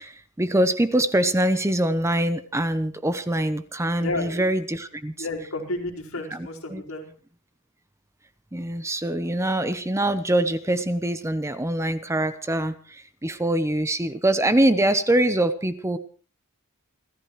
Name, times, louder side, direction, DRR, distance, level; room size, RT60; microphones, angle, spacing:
voice 1, 0.0-5.1 6.3-6.8 8.5-16.0, right 1 dB, 15° right, 11 dB, 0.8 m, -24 dB
voice 2, 4.0-4.4 5.2-7.1, left 2 dB, 70° left, 0 dB, 4.6 m, -31 dB
30.0 x 14.5 x 3.2 m, 0.39 s
head